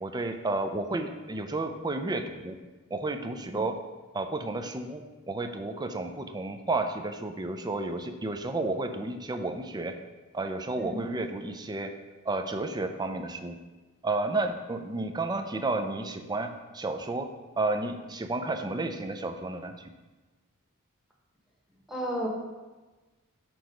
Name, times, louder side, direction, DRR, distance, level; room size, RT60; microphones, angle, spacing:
voice 1, 0.0-2.6 2.9-3.8 4.1-9.9 10.3-11.9 12.3-13.5 14.0-17.3 17.6-19.7, right 2 dB, 20° right, 6 dB, 0.5 m, -32 dB
voice 2, 21.9-22.3, equal, ahead, -3 dB, 1.2 m, -33 dB
6.1 x 4.7 x 5.1 m, 1.2 s
head